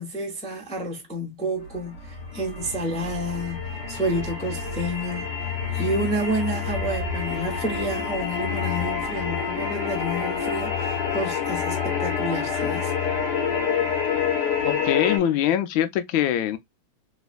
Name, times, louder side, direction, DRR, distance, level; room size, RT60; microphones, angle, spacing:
voice 1, 0.0-5.3 5.7-12.9, equal, 5° left, 0.6 m, -30 dB
sound 1, 1.7-15.2, left 6 dB, 60° left, 1.6 m, -27 dB
voice 2, 14.6-16.6, left 11 dB, 75° left, 1.4 m, -23 dB
3.3 x 3.0 x 2.4 m
omnidirectional pair, 2.3 m